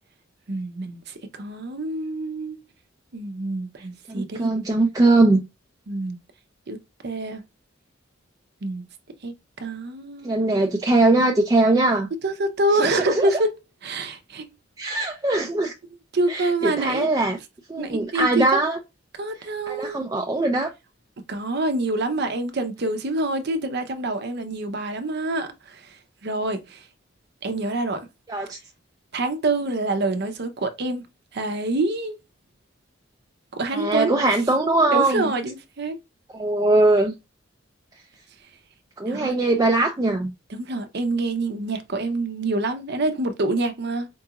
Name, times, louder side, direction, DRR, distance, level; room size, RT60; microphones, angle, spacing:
voice 1, 0.5-2.6 3.1-4.7 5.9-6.2 6.7-6.8 7.0-7.4 8.6-8.8 9.2-10.7 12.2-13.5 13.8-14.5 16.1-17.1 17.8-18.5 19.2-20.0 21.3-26.9 27.4-28.1 29.1-31.0 31.3-32.2 33.5-34.2 34.9-36.0 39.1-39.3 40.5-44.1, right 2 dB, 55° right, 0.7 m, -26 dB
voice 2, 4.1-5.4 10.2-12.1 12.8-13.3 14.8-15.7 16.3-17.4 17.7-18.8 19.7-20.7 28.3-28.6 33.7-35.3 36.3-37.1 39.0-40.3, right 2 dB, 20° right, 0.4 m, -21 dB
4.5 x 2.4 x 2.9 m
head